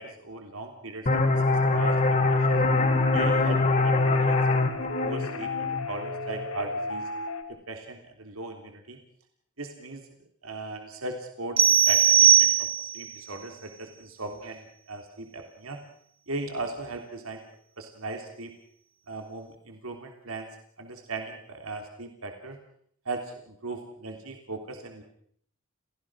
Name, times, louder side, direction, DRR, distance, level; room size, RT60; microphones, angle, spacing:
voice 1, 0.0-2.6 3.1-4.4 4.7-7.1 7.5-9.0 9.6-10.1 10.4-12.7 12.9-14.6 14.9-15.8 16.3-17.4 17.8-18.5 19.1-20.5 20.8-22.6 23.0-25.0, right 2 dB, 80° right, 4 dB, 3.4 m, -38 dB
sound 1, 1.1-6.5, left 3 dB, 35° left, 2.6 m, -24 dB
sound 2, 1.8-7.4, left 4 dB, 75° left, 2.3 m, -35 dB
sound 3, 11.6-13.1, right 9 dB, 25° right, 0.9 m, -19 dB
30.0 x 16.0 x 6.3 m, 0.65 s
head